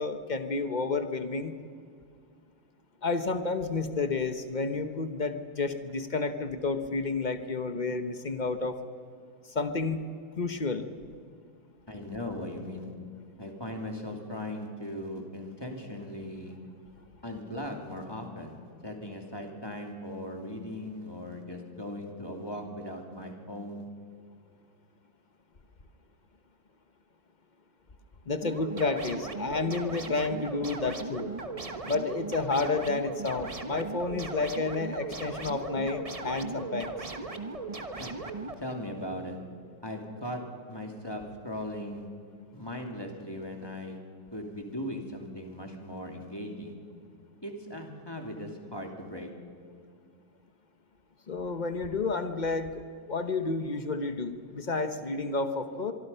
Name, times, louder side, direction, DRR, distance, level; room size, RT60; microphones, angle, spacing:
voice 1, 0.0-1.5 3.0-8.8 9.5-10.0 10.4-10.9 28.3-31.3 31.8-36.9 51.3-55.9, left 3 dB, 65° left, 9 dB, 0.4 m, -30 dB
voice 2, 11.9-13.0 13.4-16.6 17.2-23.9 38.0-38.2 38.6-39.5 39.8-42.1 42.5-46.7 47.4-49.4, left 1 dB, 10° left, 2 dB, 2.6 m, -38 dB
sound 1, 28.4-38.5, right 3 dB, 25° right, 0.7 m, -38 dB
24.5 x 24.0 x 5.6 m, 2.2 s
omnidirectional pair, 2.4 m